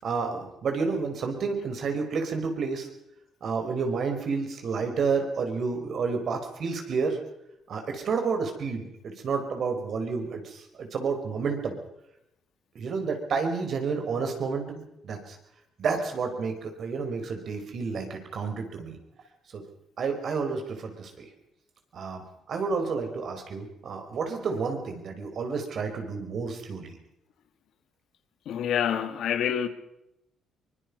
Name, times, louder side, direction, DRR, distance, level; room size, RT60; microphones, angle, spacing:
voice 1, 0.0-2.9 3.4-7.2 7.7-11.8 12.7-14.8 15.0-15.4 15.8-19.0 19.5-19.6 20.0-21.3 21.9-26.9, right 5 dB, 60° right, 4.7 m, -30 dB
voice 2, 28.5-29.7, left 9 dB, 75° left, 1.8 m, -27 dB
24.0 x 21.5 x 5.5 m
cardioid pair, 90°, 0 cm